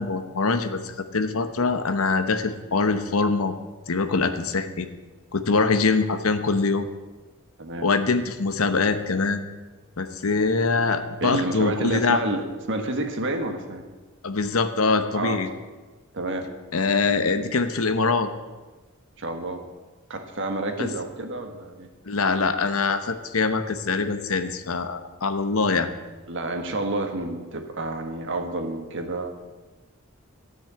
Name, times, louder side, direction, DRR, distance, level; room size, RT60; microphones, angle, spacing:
voice 1, 0.0-3.5 3.9-4.9 5.3-6.9 7.8-9.5 10.0-12.2 14.2-15.5 16.7-18.3 20.8-20.9 22.0-25.9, left 4 dB, 75° left, 9 dB, 1.0 m, -23 dB
voice 2, 11.2-12.4 12.7-13.8 15.1-15.4 16.1-16.5 19.2-19.6 20.1-21.9 26.3-29.3, right 2 dB, 60° right, 5 dB, 1.6 m, -29 dB
13.5 x 6.3 x 8.5 m, 1.2 s
head